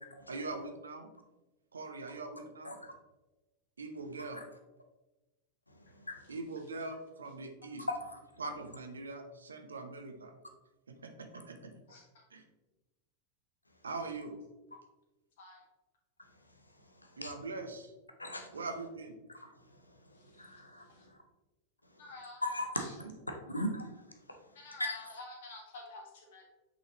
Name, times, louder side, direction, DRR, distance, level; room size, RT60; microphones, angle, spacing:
voice 1, 0.3-1.1 1.7-2.8 3.8-4.4 6.3-7.9 8.4-10.3 10.9-11.7 12.3-12.4 13.8-14.4 17.2-17.9 18.5-19.2 23.0-23.1, right 3 dB, 75° right, 0.8 m, -42 dB
voice 2, 7.9-8.2 17.0-17.3 18.2-18.6 19.4-19.5 20.1-21.2 22.4-22.9 23.3-23.9 24.8-25.1, left 1 dB, 85° left, 0.7 m, -38 dB
voice 3, 22.0-22.4 22.7-22.9 24.5-26.5, left 3 dB, 55° left, 1.6 m, -48 dB
8.2 x 4.1 x 2.9 m
figure-of-eight pair, 90°, 0 cm